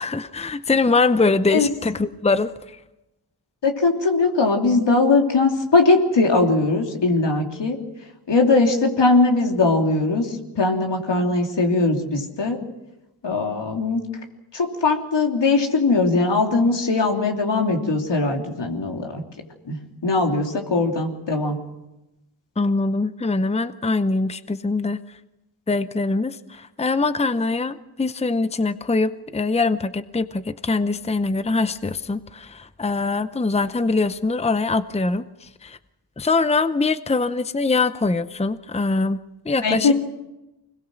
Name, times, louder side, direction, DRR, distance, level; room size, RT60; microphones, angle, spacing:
voice 1, 0.0-2.5 22.6-25.0 25.7-35.8 36.2-39.2 39.5-39.9, left 3 dB, 15° left, 13 dB, 0.7 m, -23 dB
voice 2, 3.6-7.8 8.3-12.6 13.2-14.0 14.5-19.2 19.7-19.8 20.0-21.6 39.6-39.9, left 3 dB, 85° left, 2 dB, 3.1 m, -20 dB
25.5 x 21.0 x 6.3 m, 0.98 s
wide cardioid pair, 90°, 41 cm